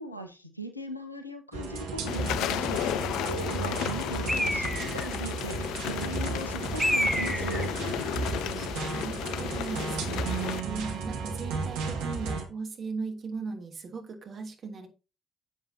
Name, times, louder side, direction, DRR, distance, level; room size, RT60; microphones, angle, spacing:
voice 1, 0.0-7.7, right 1 dB, 90° left, 7 dB, 0.8 m, -39 dB
sound 1, 1.5-12.5, right 4 dB, 65° right, 1.9 m, -34 dB
sound 2, 2.1-10.6, left 10 dB, 60° left, 0.6 m, -33 dB
Bird, 4.3-5.1 6.8-7.7, equal, ahead, 1.5 m, -28 dB
voice 2, 8.5-14.9, right 4 dB, 45° right, 3 dB, 2.8 m, -38 dB
11.0 x 7.8 x 2.8 m, 0.31 s
figure-of-eight pair, 45°, 0 cm